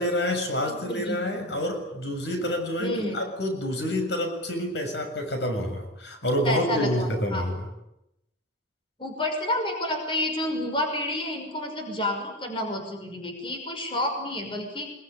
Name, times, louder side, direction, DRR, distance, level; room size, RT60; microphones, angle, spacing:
voice 1, 0.0-7.6, left 1 dB, 80° left, 5 dB, 6.9 m, -28 dB
voice 2, 0.7-1.5 2.8-3.2 6.4-7.5 9.0-14.9, left 1 dB, 30° left, 4 dB, 5.9 m, -30 dB
25.0 x 22.5 x 10.0 m, 0.86 s
head